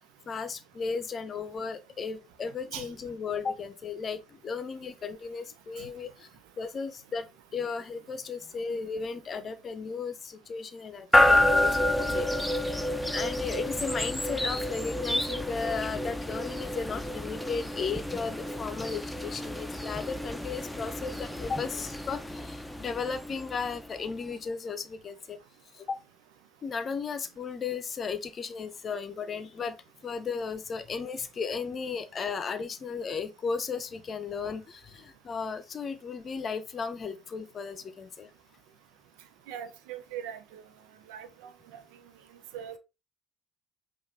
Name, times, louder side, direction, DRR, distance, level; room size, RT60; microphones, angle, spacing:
voice 1, 0.3-6.3 6.6-7.3 7.5-12.3 12.6-12.8 13.1-25.4 25.7-26.0 26.6-29.8 30.0-38.3, left 5 dB, 45° left, 0.7 m, -35 dB
sound 1, 11.1-24.1, left 1 dB, 5° left, 0.8 m, -29 dB
voice 2, 39.5-40.6 41.1-41.3 41.7-41.8 42.5-42.8, right 9 dB, 75° right, 0.6 m, -40 dB
5.3 x 2.5 x 3.6 m
hypercardioid pair, 55°, 0 cm